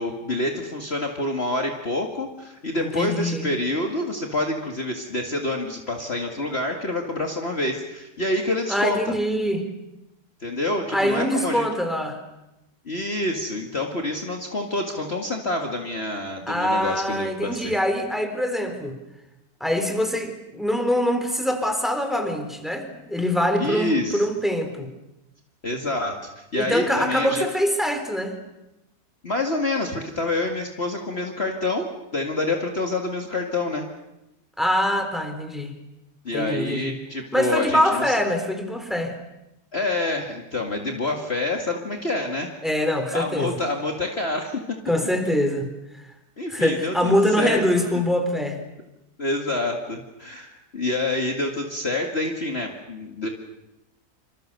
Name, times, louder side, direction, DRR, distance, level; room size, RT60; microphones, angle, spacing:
voice 1, 0.0-9.1 10.4-11.7 12.9-17.7 23.6-24.3 25.6-27.5 29.2-31.9 32.1-33.8 36.2-38.2 39.7-42.5 43.1-44.8 46.4-48.0 49.2-53.3, left 2 dB, 35° left, 2 dB, 2.2 m, -27 dB
voice 2, 2.8-3.4 8.7-9.7 10.9-12.2 16.5-19.0 19.6-24.9 26.6-28.4 34.6-35.7 36.3-37.0 37.3-39.1 42.6-43.5 44.9-45.7 45.9-46.1 46.5-48.6, equal, ahead, 6 dB, 3.6 m, -24 dB
27.0 x 26.5 x 6.8 m, 0.92 s
omnidirectional pair, 1.8 m